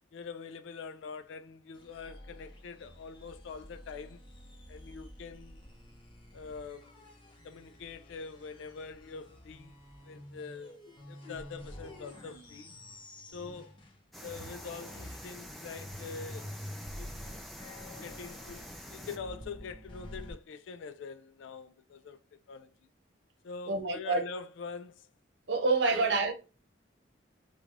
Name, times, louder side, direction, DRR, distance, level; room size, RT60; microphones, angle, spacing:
voice 1, 0.1-4.2 4.7-5.6 6.3-7.0 7.4-9.7 10.0-10.8 11.1-12.7 13.3-13.7 14.2-16.6 16.9-17.1 18.0-22.2 22.5-22.7 23.4-25.1 25.9-26.1, left 5 dB, 80° left, 0.3 m, -44 dB
sound 1, 1.7-14.0 14.3-20.3, left 1 dB, 25° left, 0.7 m, -49 dB
sound 2, 14.1-19.2, equal, ahead, 0.4 m, -47 dB
voice 2, 23.7-24.2 25.5-26.3, right 3 dB, 65° right, 0.8 m, -27 dB
3.1 x 2.3 x 2.5 m
head